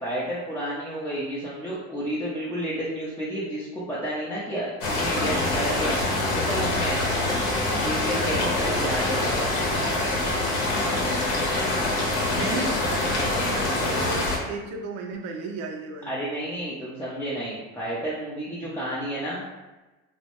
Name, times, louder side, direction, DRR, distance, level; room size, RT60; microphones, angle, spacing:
voice 1, 0.0-6.0 6.3-7.0 7.8-9.5 16.1-19.4, right 1 dB, 10° left, -9 dB, 0.4 m, -31 dB
sound 1, 4.8-14.4, left 2 dB, 70° left, 0.8 m, -25 dB
voice 2, 11.3-11.8 12.3-16.1 18.6-18.7, right 3 dB, 55° right, 2 dB, 0.5 m, -34 dB
2.2 x 2.1 x 2.9 m, 1.1 s
supercardioid pair, 105°, 31 cm